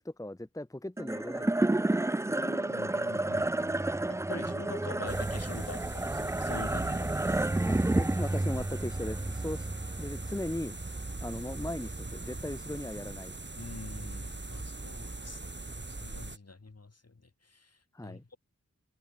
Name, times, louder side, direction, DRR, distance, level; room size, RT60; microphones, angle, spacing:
voice 1, 0.0-1.8 7.7-9.7 10.0-10.7 11.2-13.3 17.9-18.2, left 1 dB, 10° left, 1.0 m, -38 dB
sound 1, 1.0-11.5, right 2 dB, 10° right, 0.4 m, -31 dB
voice 2, 2.2-7.2 10.0-10.1 13.6-17.1 17.4-18.4, left 3 dB, 55° left, 2.7 m, -45 dB
sound 2, 5.1-16.4, right 2 dB, 40° right, 2.3 m, -40 dB
wide cardioid pair, 50°, 29 cm